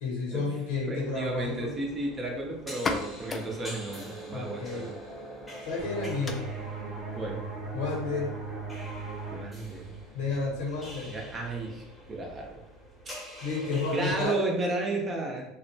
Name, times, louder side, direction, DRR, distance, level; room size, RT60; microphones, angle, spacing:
voice 1, 0.0-1.7 4.3-4.9 5.6-6.4 7.7-8.4 10.1-11.2 13.4-14.4, left 4 dB, 85° left, -1 dB, 0.9 m, -31 dB
voice 2, 0.9-4.9 7.2-7.4 9.3-9.9 11.1-12.6 13.0-13.1 13.9-15.5, right 2 dB, 25° right, 0 dB, 0.6 m, -33 dB
sound 1, 1.0-14.3, right 1 dB, 5° left, 0.9 m, -46 dB
sound 2, 2.7-10.1, left 3 dB, 25° left, 0.3 m, -41 dB
sound 3, 5.8-11.2, right 4 dB, 65° right, 0.8 m, -39 dB
2.7 x 2.1 x 2.6 m, 0.81 s
supercardioid pair, 115°, 0 cm